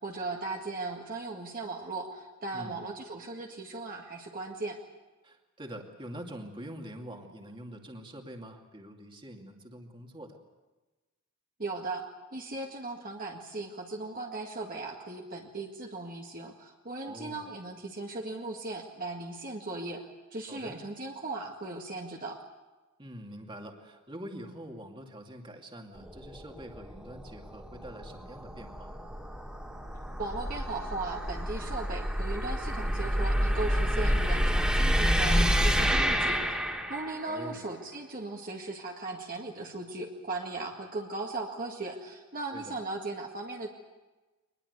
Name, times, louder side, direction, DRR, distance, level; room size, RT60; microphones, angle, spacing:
voice 1, 0.0-4.8 11.6-12.0 12.3-20.0 20.3-22.4 30.2-36.5 36.9-43.7, right 2 dB, 40° right, 0 dB, 2.0 m, -37 dB
voice 2, 5.2-10.4 17.0-17.5 20.5-20.8 23.0-28.9 37.2-37.6 42.5-42.8, equal, 20° right, 2 dB, 2.4 m, -45 dB
sound 1, 26.0-37.4, equal, 5° right, 2.4 m, -29 dB
23.5 x 20.5 x 8.2 m, 1.2 s
head